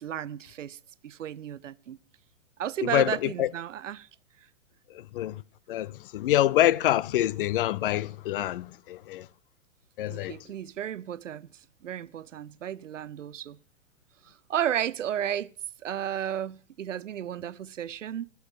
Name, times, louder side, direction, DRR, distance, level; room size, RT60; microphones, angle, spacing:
voice 1, 0.0-2.0 2.6-4.1 10.1-11.5 11.8-13.6 14.2-15.5 15.8-18.3, right 10 dB, 80° right, 0.6 m, -33 dB
voice 2, 2.8-3.5 4.9-5.4 5.7-9.3 10.0-10.4, left 13 dB, 45° left, 0.5 m, -26 dB
16.5 x 7.2 x 7.3 m
hypercardioid pair, 120°, 37 cm